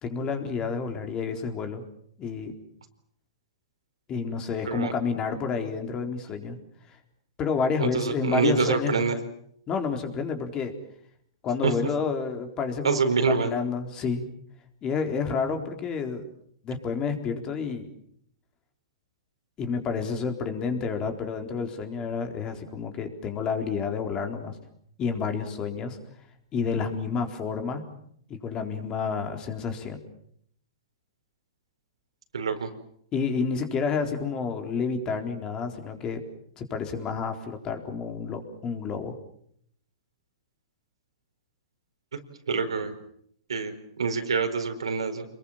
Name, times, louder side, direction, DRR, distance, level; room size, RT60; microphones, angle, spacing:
voice 1, 0.0-1.8 2.2-2.5 4.1-6.6 6.9-7.0 7.4-9.0 9.7-10.7 11.4-13.0 13.3-14.2 14.8-16.2 16.6-17.9 19.6-24.6 25.0-26.0 26.5-27.8 28.3-30.0 33.1-36.2 36.6-39.1, left 5 dB, 25° left, 5 dB, 4.1 m, -29 dB
voice 2, 7.8-9.1 11.6-11.7 12.8-13.5 32.3-32.7 42.5-42.9 43.5-45.3, right 5 dB, 90° right, 6 dB, 4.5 m, -26 dB
28.5 x 21.5 x 7.4 m, 0.69 s
hypercardioid pair, 130°, 3 cm